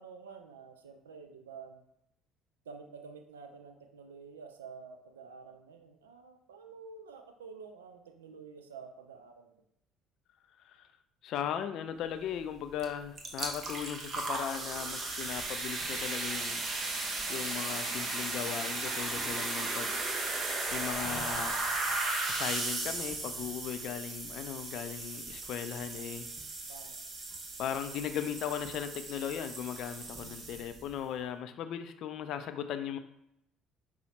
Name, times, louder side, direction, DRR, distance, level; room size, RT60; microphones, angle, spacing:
voice 1, 0.0-1.8 2.7-9.6 26.7-27.0, right 5 dB, 85° right, 7 dB, 0.3 m, -49 dB
voice 2, 11.2-16.6 16.9-19.9 20.7-21.5 22.3-26.3 27.6-33.0, left 9 dB, 60° left, 9 dB, 0.3 m, -37 dB
sound 1, 12.8-12.9 13.2-30.9, right 2 dB, 40° right, 0.8 m, -36 dB
5.4 x 2.0 x 2.9 m, 0.80 s
hypercardioid pair, 60°, 0 cm